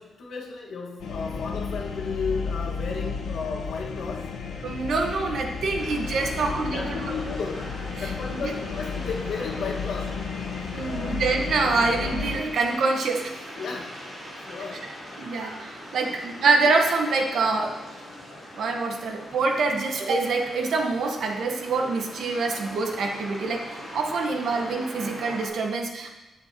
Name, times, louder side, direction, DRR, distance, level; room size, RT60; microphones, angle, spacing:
voice 1, 0.0-4.4 6.4-7.7 8.0-10.2 10.8-11.2 13.6-14.0 14.4-15.0 16.0-16.2, left 4 dB, 70° left, -1 dB, 1.5 m, -34 dB
sound 1, 1.0-12.4, left 5 dB, 85° left, 1.4 m, -33 dB
voice 2, 4.6-7.1 8.4-8.5 10.7-13.3 15.2-17.7 18.5-26.1, right 3 dB, 60° right, 2 dB, 1.3 m, -25 dB
sound 2, 5.8-25.5, equal, 20° right, 2.8 m, -41 dB
18.5 x 6.6 x 2.9 m, 1.1 s
wide cardioid pair, 170°, 0 cm